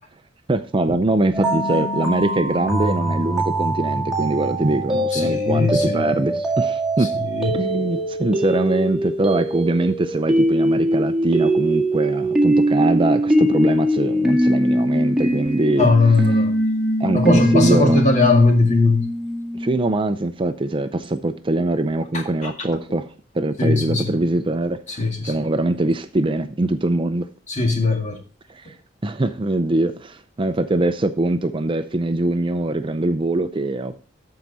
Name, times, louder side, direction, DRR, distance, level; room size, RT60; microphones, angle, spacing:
voice 1, 0.5-7.1 7.5-15.9 17.0-18.1 19.6-23.1 23.3-27.3 28.5-28.6 29.0-34.0, right 2 dB, 25° right, 0.5 m, -22 dB
sound 1, 1.3-19.8, right 1 dB, 5° right, 1.9 m, -22 dB
voice 2, 5.1-6.0 7.2-7.5 15.8-16.5 17.1-19.1 22.4-22.5 23.6-24.0 25.0-25.3 27.5-28.2, left 3 dB, 40° left, 1.9 m, -19 dB
13.5 x 4.8 x 4.0 m
head